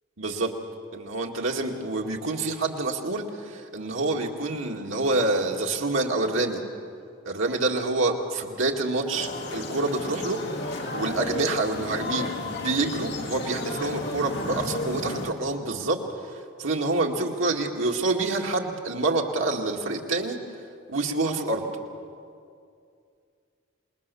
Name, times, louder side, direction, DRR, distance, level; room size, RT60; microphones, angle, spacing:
voice 1, 0.2-0.5 0.9-6.6 7.2-16.0 16.2-20.4 20.9-21.7, right 2 dB, 85° right, 0 dB, 2.1 m, -27 dB
sound 1, 9.1-15.3, left 2 dB, 60° left, 2.1 m, -33 dB
27.0 x 20.5 x 7.0 m, 2.4 s
head